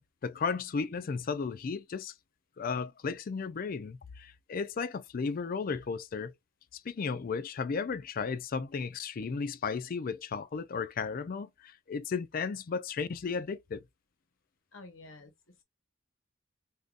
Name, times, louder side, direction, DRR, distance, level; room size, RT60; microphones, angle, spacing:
voice 1, 0.0-2.1 2.6-6.3 6.7-13.8, left 5 dB, 45° left, 0.4 m, -34 dB
voice 2, 14.7-15.6, left 2 dB, 80° left, 1.1 m, -51 dB
3.7 x 2.6 x 2.4 m
head